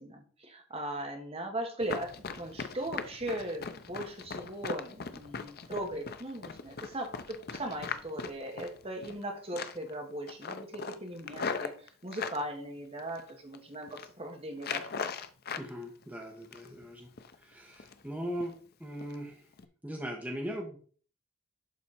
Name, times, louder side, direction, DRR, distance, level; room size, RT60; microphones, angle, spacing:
voice 1, 0.0-14.9, right 1 dB, 30° right, 3 dB, 1.5 m, -39 dB
Run, 1.8-9.2 9.5-9.9 10.3-12.4 13.0-13.6 13.8-14.1 14.6-15.7 16.0-16.8 17.2-17.4 17.7-18.1 18.4-18.5 19.0-19.2 19.5-19.6, left 5 dB, 45° left, 0.6 m, -39 dB
voice 2, 15.6-17.1 17.4-18.5 18.8-19.4 19.8-20.8, equal, 5° right, 0 dB, 1.2 m, -39 dB
11.5 x 4.2 x 4.3 m, 0.44 s
head